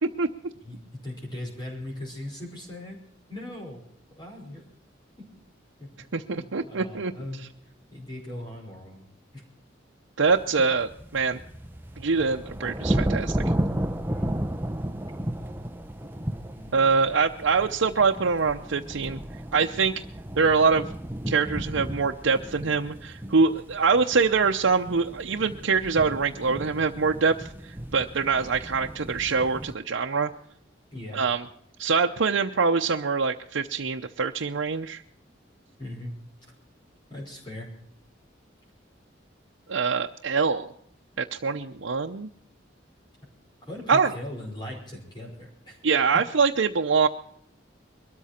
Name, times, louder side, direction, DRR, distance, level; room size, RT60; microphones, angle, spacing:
voice 1, 1.0-3.0 3.3-3.8 4.1-4.6 5.2-5.3 5.8-5.9 6.3-9.0 9.3-9.4 10.6-10.7 14.1-14.5 16.5-16.7 30.9-31.2 35.8-36.1 36.4-36.5 37.1-37.7 43.6-45.8 46.1-46.2, left 1 dB, 25° left, -2 dB, 5.1 m, -39 dB
voice 2, 6.1-7.1 10.2-11.4 12.0-13.4 16.7-19.2 19.5-20.0 20.4-20.9 21.3-30.3 31.1-31.4 31.8-35.0 39.7-40.7 41.2-42.3 43.9-44.1 45.8-47.1, right 5 dB, 85° right, 2 dB, 0.8 m, -24 dB
sound 1, 10.2-29.7, right 1 dB, 10° right, 0.8 m, -34 dB
22.5 x 13.5 x 4.4 m, 0.68 s
head